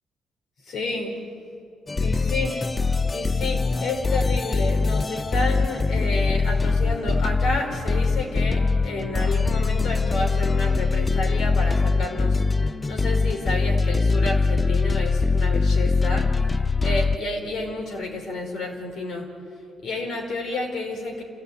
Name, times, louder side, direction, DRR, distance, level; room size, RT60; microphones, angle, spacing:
voice 1, 0.7-1.1 2.0-2.6 3.1-12.4 12.9-16.3 16.8-19.3 19.8-21.2, left 2 dB, 70° left, 1 dB, 5.2 m, -30 dB
sound 1, 1.9-17.2, left 3 dB, 25° left, 0.5 m, -22 dB
28.0 x 15.5 x 9.6 m, 2.4 s
cardioid pair, 90°, 0 cm